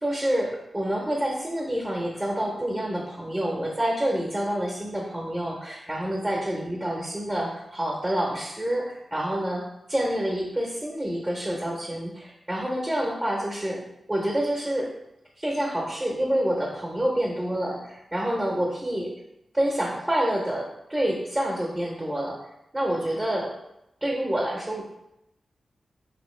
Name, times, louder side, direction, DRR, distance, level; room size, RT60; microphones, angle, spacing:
voice 1, 0.0-13.8 14.1-14.9 15.4-19.1 19.5-22.4 22.7-23.5 24.0-24.8, right 1 dB, 15° right, -2 dB, 0.8 m, -27 dB
3.5 x 2.9 x 3.1 m, 0.86 s
wide cardioid pair, 85°, 0 cm